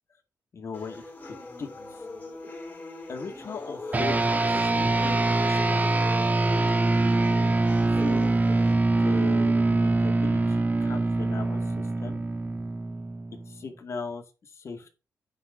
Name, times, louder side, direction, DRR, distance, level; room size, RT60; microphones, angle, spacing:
voice 1, 0.5-2.0 3.1-4.3 4.7-6.0 7.9-8.3 9.0-12.2 13.5-15.0, left 5 dB, 50° left, 3 dB, 2.2 m, -39 dB
sound 1, 0.7-8.7, left 2 dB, 30° left, 4.3 m, -41 dB
sound 2, 3.9-13.6, right 2 dB, 25° right, 1.4 m, -24 dB
9.8 x 4.2 x 5.9 m, 0.31 s
cardioid pair, 95°, 6 cm